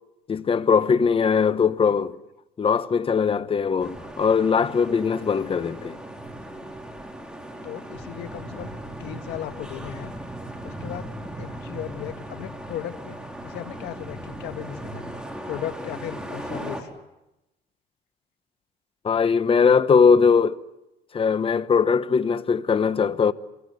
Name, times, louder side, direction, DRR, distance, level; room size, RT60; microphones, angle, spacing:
voice 1, 0.3-2.1 2.6-6.0 19.0-20.6 21.1-23.3, left 6 dB, 30° left, 1.2 m, -20 dB
sound 1, 3.8-16.8, right 1 dB, 5° right, 4.8 m, -37 dB
voice 2, 7.6-8.7 9.0-10.1 10.6-11.1 11.4-13.2 13.4-15.0 15.5-16.9, left 12 dB, 85° left, 1.9 m, -36 dB
27.5 x 23.5 x 8.0 m
cardioid pair, 110°, 17 cm